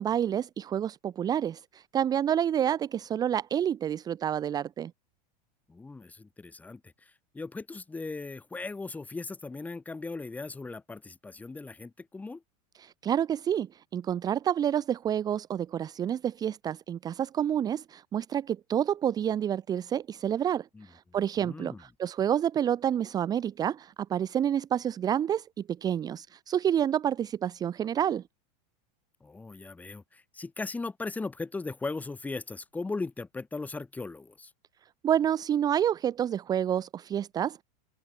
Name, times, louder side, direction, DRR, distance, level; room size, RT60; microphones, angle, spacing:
voice 1, 0.0-4.9 12.8-28.2 35.0-37.6, right 9 dB, 20° right, 1.4 m, -29 dB
voice 2, 5.7-12.4 20.7-21.8 29.2-34.5, left 3 dB, 5° left, 4.6 m, -38 dB
supercardioid pair, 170°, 21 cm